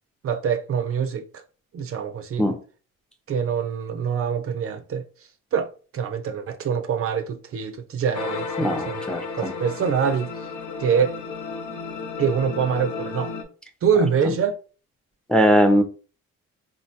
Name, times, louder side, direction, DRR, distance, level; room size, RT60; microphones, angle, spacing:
voice 1, 0.2-1.4 1.7-2.5 3.3-5.0 5.5-9.0 9.3-10.3 10.8-11.2 12.2-13.3 13.8-14.6, right 7 dB, 50° right, 0.5 m, -25 dB
sound 1, 8.1-13.4, left 4 dB, 80° left, 0.7 m, -33 dB
voice 2, 8.6-9.5 15.3-15.8, equal, 5° left, 0.5 m, -20 dB
3.9 x 2.1 x 2.7 m
cardioid pair, 90°, 30 cm